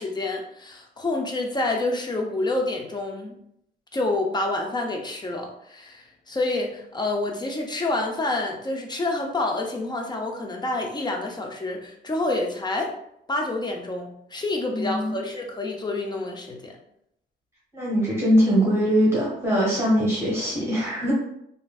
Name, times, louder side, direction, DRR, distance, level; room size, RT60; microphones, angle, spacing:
voice 1, 0.0-3.4 3.9-12.9 13.3-16.8, left 2 dB, 20° left, 1 dB, 0.5 m, -28 dB
voice 2, 14.7-15.1 17.7-21.1, equal, 15° right, -6 dB, 1.2 m, -22 dB
3.1 x 2.6 x 2.3 m, 0.75 s
cardioid pair, 90°, 20 cm